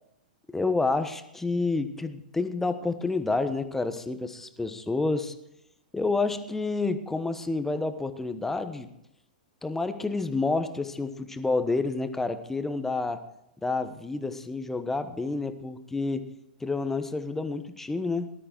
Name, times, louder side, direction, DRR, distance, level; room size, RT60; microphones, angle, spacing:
voice 1, 0.5-5.3 5.9-8.9 9.6-13.2 13.6-16.3 16.6-18.3, left 3 dB, 5° left, 9 dB, 1.3 m, -29 dB
19.0 x 12.5 x 4.5 m, 0.80 s
figure-of-eight pair, 105°, 4 cm